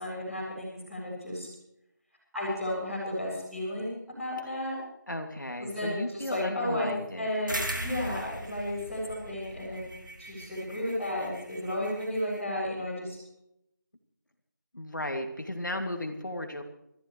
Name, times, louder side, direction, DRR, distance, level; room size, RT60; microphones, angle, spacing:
voice 1, 0.0-1.5 2.3-4.8 5.6-6.9 7.1-13.2, left 1 dB, ahead, -17 dB, 2.5 m, -33 dB
voice 2, 5.1-7.3 14.7-16.6, left 1 dB, 70° left, 4 dB, 2.5 m, -35 dB
sound 1, 7.5-12.4, right 1 dB, 75° right, 2.7 m, -39 dB
24.5 x 14.5 x 3.2 m, 0.80 s
figure-of-eight pair, 175°, 11 cm